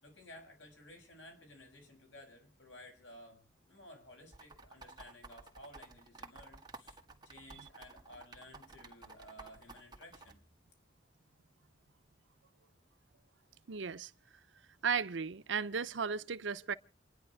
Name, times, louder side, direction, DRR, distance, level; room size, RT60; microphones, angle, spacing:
voice 1, 0.0-10.4, left 1 dB, 85° left, 6.4 m, -55 dB
sound 1, 4.3-10.3, right 3 dB, 25° right, 1.8 m, -52 dB
voice 2, 13.7-14.1 14.8-16.7, right 6 dB, 85° right, 0.7 m, -35 dB
28.0 x 10.5 x 4.8 m
head